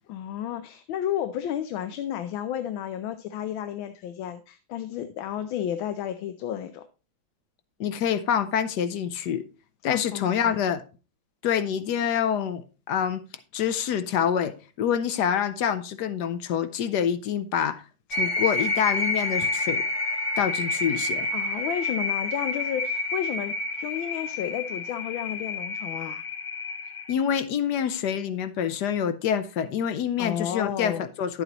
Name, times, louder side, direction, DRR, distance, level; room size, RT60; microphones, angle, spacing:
voice 1, 0.1-6.8 9.9-10.5 21.3-26.2 30.2-31.1, left 10 dB, 85° left, 1.5 m, -32 dB
voice 2, 7.8-9.4 9.8-10.8 11.4-13.2 13.5-17.8 18.1-19.8 20.4-21.3 27.1-31.4, left 8 dB, 70° left, 1.1 m, -26 dB
sound 1, 18.1-27.1, left 2 dB, 40° left, 1.5 m, -29 dB
10.5 x 8.0 x 2.9 m
omnidirectional pair, 2.1 m